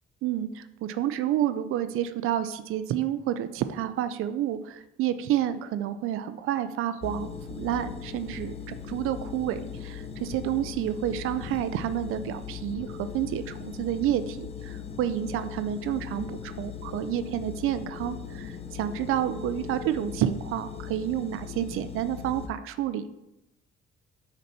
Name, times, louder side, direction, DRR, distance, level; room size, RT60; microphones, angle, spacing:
voice 1, 0.2-23.1, right 11 dB, 85° right, 12 dB, 0.4 m, -29 dB
sound 1, 7.0-22.5, left 7 dB, 30° left, 0.5 m, -39 dB
6.6 x 4.1 x 4.1 m, 0.90 s
cardioid pair, 105°, 21 cm